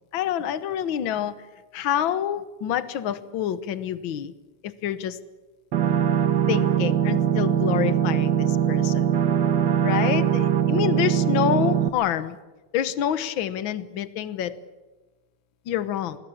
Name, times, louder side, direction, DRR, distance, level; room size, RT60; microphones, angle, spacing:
voice 1, 0.1-1.3 1.7-4.3 4.6-5.2 6.5-9.1 9.8-12.4 12.7-14.5 15.7-16.2, left 10 dB, 65° left, 14 dB, 1.2 m, -27 dB
sound 1, 5.7-11.9, right 9 dB, 55° right, 1.3 m, -22 dB
26.5 x 20.5 x 7.3 m, 1.2 s
omnidirectional pair, 3.6 m